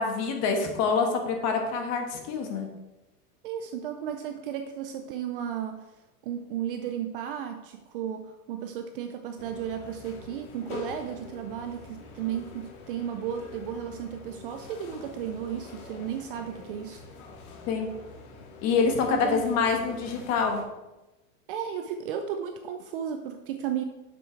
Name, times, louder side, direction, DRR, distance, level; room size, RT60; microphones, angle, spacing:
voice 1, 0.0-2.7 17.7-17.9 18.6-20.6, left 5 dB, 35° left, 3 dB, 1.4 m, -26 dB
voice 2, 3.4-5.9 6.2-17.0 19.1-19.4 21.5-23.8, right 9 dB, 40° right, 7 dB, 0.4 m, -34 dB
sound 1, 9.4-20.6, left 3 dB, 65° left, 1.8 m, -45 dB
7.7 x 6.1 x 4.4 m, 1.0 s
supercardioid pair, 155°, 47 cm